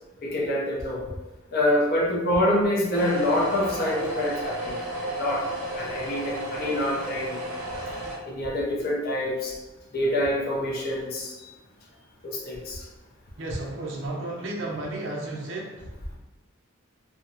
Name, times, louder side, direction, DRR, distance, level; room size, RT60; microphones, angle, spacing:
voice 1, 0.2-1.0 1.5-5.4 5.7-7.4 8.3-9.5 9.9-11.3 12.2-12.8, left 1 dB, 45° left, -3 dB, 0.5 m, -26 dB
sound 1, 2.9-8.2, right 1 dB, 90° right, 0.7 m, -33 dB
voice 2, 13.4-16.2, right 2 dB, 55° right, -1 dB, 0.5 m, -33 dB
2.7 x 2.0 x 2.5 m, 1.1 s
head